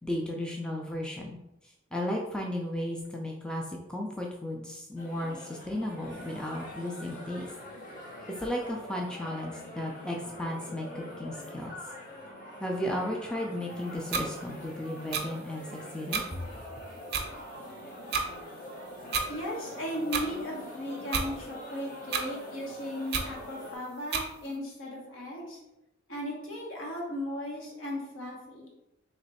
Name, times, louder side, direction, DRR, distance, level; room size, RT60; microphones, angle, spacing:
voice 1, 0.0-1.4 1.9-7.5 8.3-11.7 12.6-15.7 15.9-16.5, left 1 dB, 5° left, 0 dB, 0.4 m, -34 dB
sound 1, 5.0-23.8, left 1 dB, 40° left, 0.9 m, -44 dB
sound 2, 14.1-14.2 15.1-15.2 16.1-16.2 17.1-17.2 18.1-18.3 19.1-19.3 20.1-20.2 21.1-21.3 22.1-22.2 23.1-23.3 24.1-24.2, right 5 dB, 55° right, 0.5 m, -29 dB
voice 2, 19.3-25.6 26.1-28.7, left 1 dB, 75° left, -2 dB, 1.3 m, -36 dB
3.3 x 3.0 x 4.1 m, 0.90 s
head